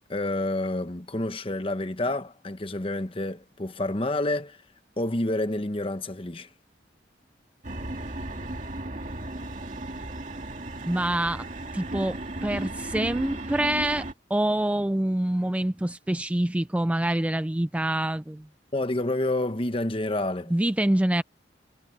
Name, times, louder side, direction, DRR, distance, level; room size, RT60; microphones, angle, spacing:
voice 1, 0.1-4.6 5.0-6.5 18.7-20.5, left 1 dB, 30° left, 1.1 m, -28 dB
sound 1, 7.6-14.1, right 1 dB, 45° right, 2.7 m, -35 dB
voice 2, 10.8-11.5 11.7-18.5 20.5-21.2, right 1 dB, 5° right, 0.3 m, -26 dB
head